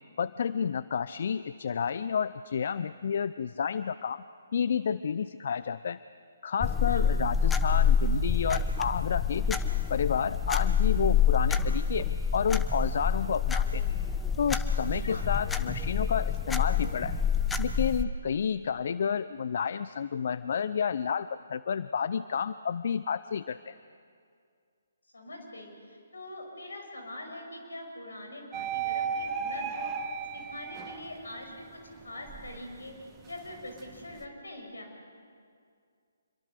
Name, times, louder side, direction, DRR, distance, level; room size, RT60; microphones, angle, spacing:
voice 1, 0.2-4.2 4.5-6.0 6.4-9.6 9.9-12.1 12.3-13.8 14.4-17.2 17.6-23.8, left 7 dB, 55° left, 15 dB, 0.5 m, -30 dB
sound 1, 6.6-18.0, left 6 dB, 10° left, 0.9 m, -27 dB
voice 2, 14.9-15.3 25.1-29.9 30.3-33.0 33.3-34.9, left 1 dB, 80° left, 3 dB, 5.7 m, -43 dB
sound 2, 28.5-31.4 31.9-34.3, right 6 dB, 20° right, 1.5 m, -36 dB
26.5 x 23.0 x 6.7 m, 2.2 s
figure-of-eight pair, 140°, 0 cm